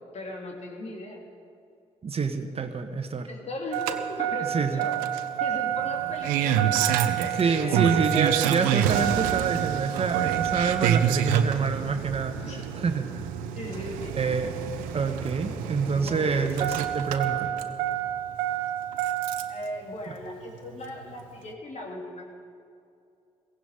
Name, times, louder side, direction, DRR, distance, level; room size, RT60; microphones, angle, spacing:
voice 1, 0.1-1.2 3.3-4.9 5.4-8.2 12.4-12.6 13.5-14.2 15.9-16.6 19.5-22.3, left 1 dB, 55° left, 0 dB, 3.5 m, -38 dB
voice 2, 2.0-3.3 4.4-4.9 7.4-13.2 14.1-14.5 14.9-17.5 20.1-20.2, right 5 dB, 45° right, 7 dB, 1.4 m, -27 dB
Engine starting, 3.7-19.6 20.9-21.0, right 10 dB, 85° right, 0.7 m, -27 dB
sound 1, 9.1-19.5, equal, 30° left, 5.3 m, -48 dB
17.0 x 16.5 x 5.1 m, 2.5 s
hypercardioid pair, 50°, 14 cm